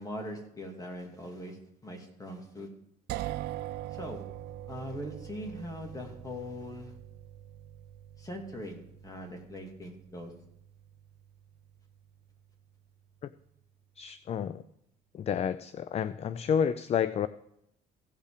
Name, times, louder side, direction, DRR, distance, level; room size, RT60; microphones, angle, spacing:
voice 1, 0.0-2.7 3.9-4.2 4.7-7.0 8.2-10.3, left 1 dB, 20° left, 2 dB, 2.7 m, -41 dB
sound 1, 3.1-12.9, right 13 dB, 80° right, 0.4 m, -43 dB
voice 2, 14.0-14.6 15.1-17.3, left 8 dB, 40° left, 15 dB, 0.4 m, -30 dB
16.5 x 5.6 x 5.0 m, 0.78 s
cardioid pair, 110°, 17 cm